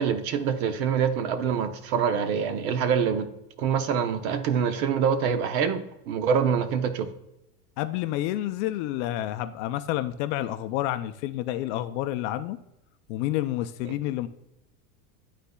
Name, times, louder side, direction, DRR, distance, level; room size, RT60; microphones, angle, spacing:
voice 1, 0.0-3.3 3.6-7.1, right 7 dB, 65° right, 10 dB, 0.9 m, -25 dB
voice 2, 7.8-12.6 13.1-14.3, left 14 dB, 50° left, 9 dB, 0.5 m, -29 dB
11.5 x 4.1 x 2.3 m, 0.87 s
supercardioid pair, 135°, 48 cm